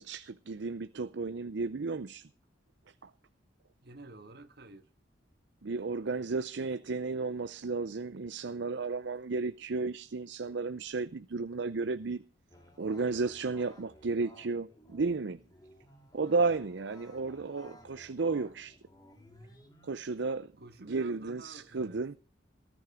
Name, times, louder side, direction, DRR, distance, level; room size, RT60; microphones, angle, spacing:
voice 1, 0.0-2.2 3.0-3.1 5.6-12.2 12.8-15.4 16.1-18.8 19.8-20.5 20.9-22.1, right 4 dB, 75° right, 0.6 m, -33 dB
voice 2, 3.8-4.9 16.4-16.7 20.6-22.2, right 2 dB, 60° right, 1.9 m, -51 dB
sound 1, 12.5-20.0, left 1 dB, 20° left, 3.0 m, -57 dB
18.5 x 9.7 x 4.9 m
head